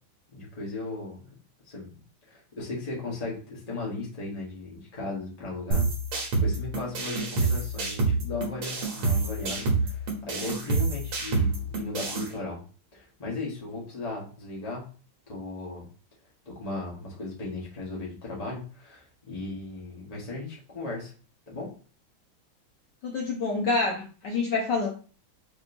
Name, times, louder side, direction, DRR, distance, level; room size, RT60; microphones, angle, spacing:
voice 1, 0.3-1.3 1.7-1.9 2.3-5.9 6.4-12.6 12.9-14.9 15.3-15.9 16.4-21.1 21.5-21.7, left 3 dB, 25° left, -3 dB, 1.1 m, -36 dB
sound 1, 5.7-12.3, right 3 dB, 90° right, 2.2 m, -27 dB
voice 2, 23.0-24.9, left 3 dB, 65° left, -1 dB, 1.2 m, -27 dB
5.0 x 3.0 x 2.6 m, 0.38 s
omnidirectional pair, 2.3 m